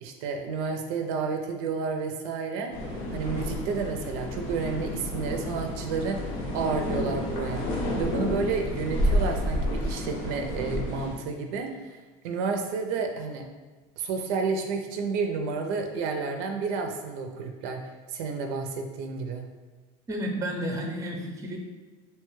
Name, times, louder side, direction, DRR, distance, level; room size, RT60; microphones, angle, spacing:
voice 1, 0.0-2.7 3.1-7.6 8.0-12.0 12.2-13.4 14.0-17.8 18.1-19.4, right 4 dB, 75° right, 4 dB, 0.4 m, -31 dB
sound 1, 2.7-11.1, left 1 dB, 85° left, 0.7 m, -30 dB
voice 2, 20.1-21.6, equal, 20° right, 1 dB, 0.5 m, -31 dB
2.8 x 2.2 x 3.1 m, 1.3 s
supercardioid pair, 115°, 17 cm